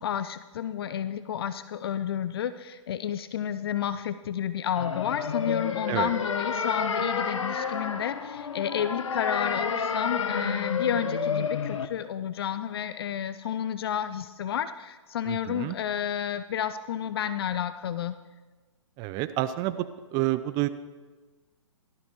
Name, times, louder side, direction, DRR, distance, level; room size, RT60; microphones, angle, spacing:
voice 1, 0.0-18.2, left 9 dB, 50° left, 12 dB, 0.6 m, -31 dB
sound 1, 4.7-11.9, left 5 dB, 75° left, 1.2 m, -30 dB
voice 2, 15.3-15.8 19.0-19.8 20.1-20.7, right 16 dB, 25° right, 13 dB, 0.5 m, -28 dB
16.5 x 13.0 x 4.6 m, 1.3 s
hypercardioid pair, 130°, 16 cm